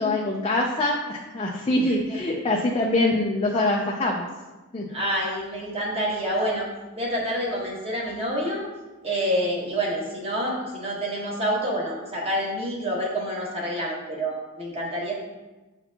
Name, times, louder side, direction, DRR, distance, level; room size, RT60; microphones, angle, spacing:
voice 1, 0.0-4.3 4.7-4.9, left 2 dB, 25° left, -2 dB, 0.5 m, -24 dB
voice 2, 1.8-2.2 4.9-6.7 7.0-8.6 9.0-15.1, equal, 30° right, -3 dB, 1.3 m, -28 dB
7.8 x 4.3 x 2.9 m, 1.2 s
head